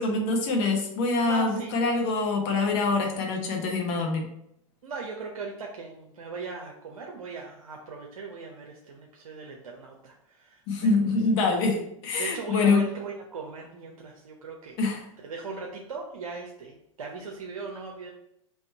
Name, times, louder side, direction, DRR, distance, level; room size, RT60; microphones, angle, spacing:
voice 1, 0.0-4.3 10.7-12.8 14.8-15.1, left 3 dB, 55° left, 1 dB, 1.1 m, -25 dB
voice 2, 1.2-1.8 4.8-11.0 12.2-14.8 15.2-18.1, right 4 dB, 85° right, 0 dB, 0.6 m, -39 dB
3.6 x 2.9 x 4.3 m, 0.77 s
hypercardioid pair, 105°, 18 cm